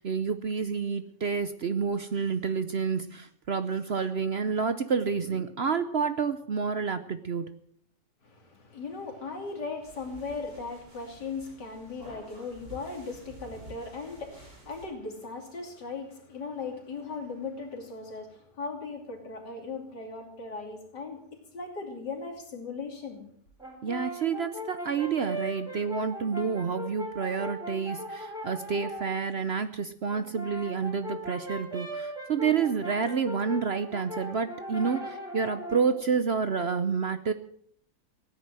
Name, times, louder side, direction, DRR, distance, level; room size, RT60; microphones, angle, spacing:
voice 1, 0.0-7.6 23.8-37.3, right 6 dB, 55° right, 0.8 m, -29 dB
voice 2, 8.2-21.2 21.5-23.3, left 4 dB, 90° left, 3.4 m, -38 dB
sound 1, 9.8-14.9, right 1 dB, 80° right, 5.5 m, -50 dB
Brass instrument, 23.6-29.2 30.1-36.0, equal, ahead, 3.8 m, -39 dB
16.5 x 10.0 x 7.6 m
omnidirectional pair, 1.8 m